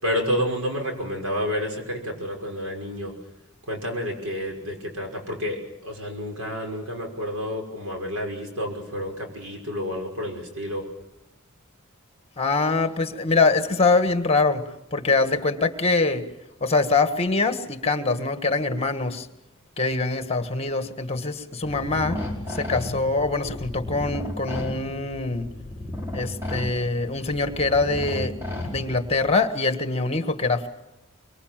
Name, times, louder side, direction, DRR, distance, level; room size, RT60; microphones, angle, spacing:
voice 1, 0.0-3.1 3.7-10.8, equal, 80° right, 2 dB, 6.0 m, -29 dB
voice 2, 12.4-14.6 14.9-16.2 16.6-19.3 19.8-22.2 22.5-25.5 26.1-28.3 28.6-30.7, left 3 dB, 30° left, 9 dB, 1.7 m, -24 dB
sound 1, 21.6-29.3, left 1 dB, 10° right, 5.0 m, -34 dB
24.5 x 23.0 x 7.6 m, 0.91 s
head